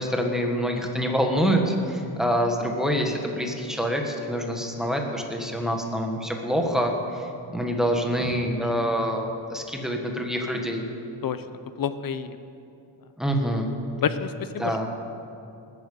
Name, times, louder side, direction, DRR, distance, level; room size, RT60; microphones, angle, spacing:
voice 1, 0.0-10.9 13.2-13.7 14.6-14.9, equal, ahead, 2 dB, 1.4 m, -26 dB
voice 2, 11.8-12.4 14.0-14.9, left 7 dB, 45° left, 12 dB, 0.6 m, -29 dB
19.0 x 8.7 x 6.9 m, 2.7 s
wide cardioid pair, 150°, 49 cm